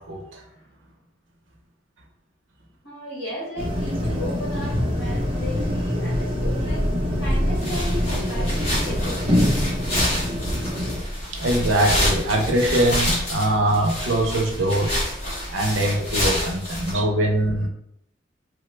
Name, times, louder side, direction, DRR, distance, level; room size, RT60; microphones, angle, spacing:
voice 1, 0.1-0.4 11.3-15.0 15.5-17.7, right 1 dB, 85° right, 3 dB, 0.6 m, -22 dB
voice 2, 2.8-9.7, left 1 dB, 65° left, -7 dB, 1.1 m, -35 dB
sound 1, 3.6-11.0, left 1 dB, 30° right, 0.6 m, -25 dB
Purr, 6.2-12.6 13.3-13.4, equal, 10° right, 0.9 m, -29 dB
sound 2, 7.5-16.9, left 1 dB, 30° left, 1.2 m, -28 dB
3.1 x 2.0 x 3.1 m, 0.77 s
head